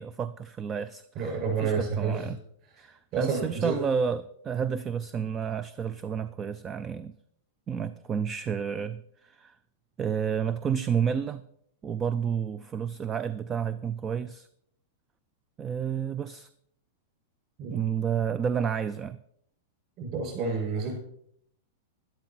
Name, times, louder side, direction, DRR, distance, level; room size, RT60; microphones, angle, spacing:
voice 1, 0.0-2.4 2.8-7.2 7.7-9.6 10.0-11.5 11.8-14.5 15.6-16.5 17.7-19.2, right 7 dB, 20° right, 0.3 m, -30 dB
voice 2, 1.1-2.2 3.1-3.8 17.6-17.9 20.0-21.0, right 5 dB, 35° right, 6.1 m, -29 dB
12.0 x 11.5 x 4.4 m
supercardioid pair, 155°, 0 cm